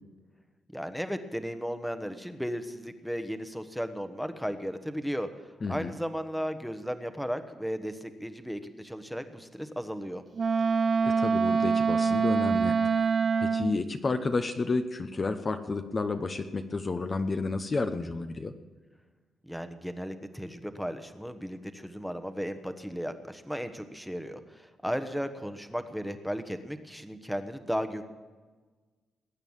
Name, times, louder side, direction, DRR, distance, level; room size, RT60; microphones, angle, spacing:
voice 1, 0.7-5.3 5.7-10.2 19.5-28.0, equal, ahead, 9 dB, 1.2 m, -35 dB
voice 2, 5.6-5.9 11.0-13.1 13.4-18.5, left 3 dB, 30° left, 7 dB, 0.9 m, -31 dB
Wind instrument woodwind instrument, 10.3-13.8, right 5 dB, 40° right, 0.4 m, -25 dB
20.5 x 8.9 x 7.3 m, 1.4 s
cardioid pair, 100°, 0 cm